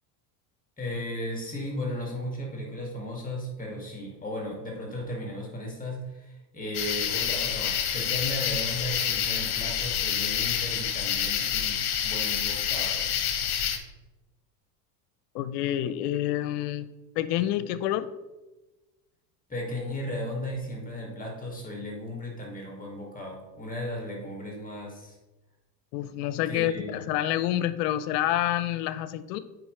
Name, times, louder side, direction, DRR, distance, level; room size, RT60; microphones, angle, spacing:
voice 1, 0.8-13.1 19.5-25.2 26.5-27.1, left 1 dB, 15° left, -1 dB, 2.2 m, -35 dB
sound 1, 6.7-13.8, left 9 dB, 50° left, 1.2 m, -28 dB
voice 2, 15.3-16.9 17.2-18.1 25.9-29.4, left 12 dB, 70° left, 14 dB, 0.7 m, -28 dB
9.2 x 5.1 x 3.2 m, 1.1 s
supercardioid pair, 95°, 49 cm